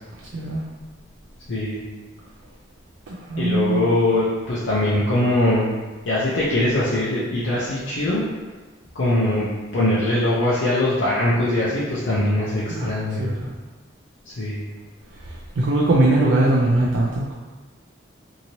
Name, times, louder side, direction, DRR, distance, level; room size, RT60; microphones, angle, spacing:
voice 1, 1.5-1.8 3.4-5.7 6.1-8.2 8.9-9.4 9.7-13.3 14.3-14.6, left 1 dB, 85° left, -8 dB, 0.5 m, -21 dB
voice 2, 3.3-3.9 12.7-12.9 13.2-13.5 15.6-17.3, right 2 dB, 80° right, -5 dB, 0.4 m, -20 dB
2.9 x 2.7 x 2.7 m, 1.3 s
head